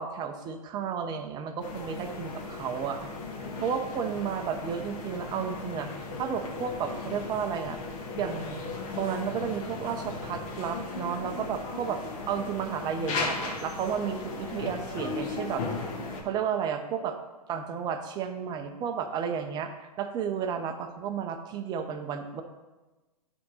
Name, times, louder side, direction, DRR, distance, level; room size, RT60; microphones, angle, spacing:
voice 1, 0.0-3.1 3.4-5.9 6.2-7.8 8.2-8.6 9.0-12.0 12.3-15.6 16.2-17.2 17.5-22.4, right 7 dB, 20° right, 7 dB, 0.6 m, -32 dB
sound 1, 1.6-16.2, left 3 dB, 55° left, 1.5 m, -36 dB
10.0 x 3.6 x 4.1 m, 1.2 s
hypercardioid pair, 125°, 20 cm